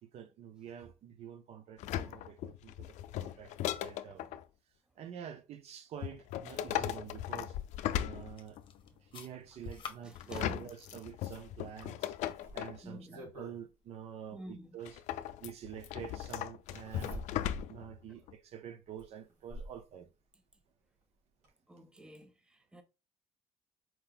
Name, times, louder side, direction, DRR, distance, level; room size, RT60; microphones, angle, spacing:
voice 1, 0.0-3.5 3.8-4.4 5.0-7.6 8.0-8.6 9.0-12.2 12.5-15.0 15.4-17.3 17.7-20.1, right 9 dB, 65° right, 0.7 m, -47 dB
sound 1, 1.8-4.4 6.0-8.8 10.2-12.8 14.9-17.9 18.3-18.4, left 12 dB, 85° left, 0.4 m, -38 dB
sound 2, 7.1-12.2, left 6 dB, 45° left, 0.9 m, -52 dB
voice 2, 10.0-10.6 12.8-13.3 14.3-14.8 16.7-16.8 18.1-18.2 21.7-22.8, equal, 5° right, 0.7 m, -50 dB
Zipper (clothing), 11.8-13.6 15.0-15.1 16.7-17.7 18.2-18.3 19.0-19.8 21.0-21.1 21.4-21.5, right 1 dB, 80° right, 2.7 m, -47 dB
4.6 x 2.6 x 3.8 m
cardioid pair, 125°, 12 cm